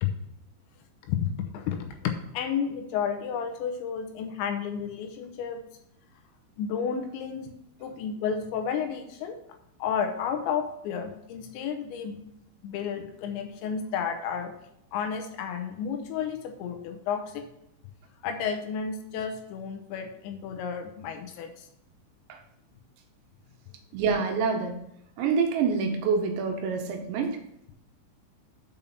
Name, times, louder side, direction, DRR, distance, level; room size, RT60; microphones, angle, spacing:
voice 1, 1.1-5.6 6.6-7.5 7.8-9.4 9.8-12.3 12.6-14.5 14.9-17.5 18.2-21.7, left 7 dB, 80° left, 5 dB, 3.0 m, -32 dB
voice 2, 23.9-24.8 25.2-27.4, right 5 dB, 75° right, 4 dB, 2.8 m, -26 dB
7.1 x 5.4 x 6.7 m, 0.80 s
omnidirectional pair, 5.5 m